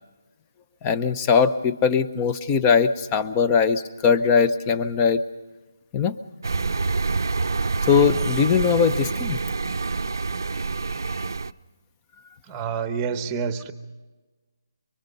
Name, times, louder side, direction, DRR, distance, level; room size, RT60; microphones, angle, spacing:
voice 1, 0.8-5.2 5.9-6.1 7.9-9.4, left 6 dB, 15° left, 11 dB, 0.7 m, -20 dB
sound 1, 6.4-11.5, right 4 dB, 70° right, 0.7 m, -26 dB
voice 2, 12.5-13.7, right 6 dB, 10° right, 10 dB, 1.0 m, -28 dB
25.5 x 24.0 x 5.3 m, 1.2 s
hypercardioid pair, 170°, 2 cm